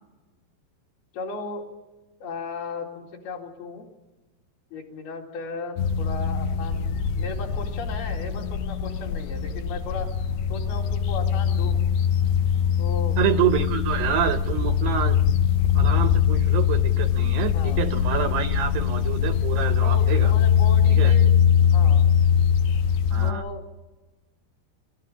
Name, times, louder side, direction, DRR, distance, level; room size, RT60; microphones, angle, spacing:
voice 1, 1.1-1.7 2.2-3.9 4.7-6.9 7.1-10.1 10.5-11.8 12.8-13.2 17.5-17.8 19.8-21.3 21.7-22.0 23.2-23.7, left 3 dB, 60° left, 0 dB, 4.1 m, -36 dB
sound 1, 5.8-23.3, left 8 dB, 75° left, 2.6 m, -22 dB
voice 2, 13.2-15.2 15.8-20.3 21.0-21.2 23.1-23.4, right 11 dB, 75° right, 8 dB, 2.6 m, -27 dB
28.0 x 14.0 x 8.9 m, 1.2 s
omnidirectional pair, 5.3 m